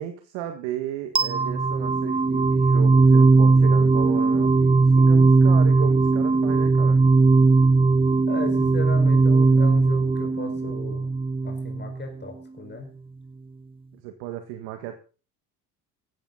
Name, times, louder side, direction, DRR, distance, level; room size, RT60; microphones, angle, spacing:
voice 1, 0.0-7.0 13.9-15.0, right 11 dB, 70° right, 8 dB, 1.8 m, -35 dB
sound 1, 1.2-12.1, right 3 dB, 10° right, 0.7 m, -18 dB
voice 2, 8.3-11.1 11.4-12.9, left 3 dB, 20° left, 4 dB, 4.9 m, -36 dB
16.0 x 14.0 x 4.0 m, 0.36 s
hypercardioid pair, 60°, 49 cm